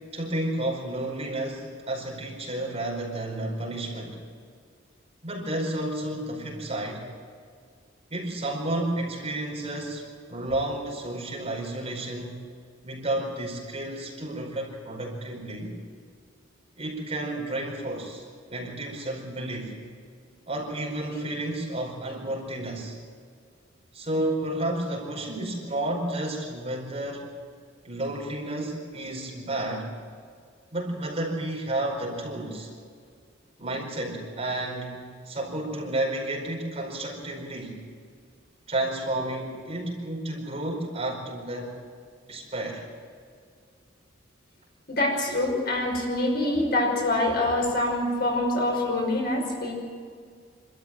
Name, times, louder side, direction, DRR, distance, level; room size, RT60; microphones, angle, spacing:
voice 1, 0.1-4.2 5.2-7.1 8.1-12.4 12.8-15.7 16.8-18.2 18.5-19.8 20.5-23.0 23.9-27.3 27.8-29.9 30.7-32.7 33.6-37.8 38.7-41.8 42.3-42.8, right 1 dB, 30° right, -1 dB, 4.8 m, -31 dB
voice 2, 44.9-49.7, left 1 dB, 50° left, 0 dB, 5.7 m, -25 dB
26.5 x 13.5 x 9.0 m, 2.1 s
head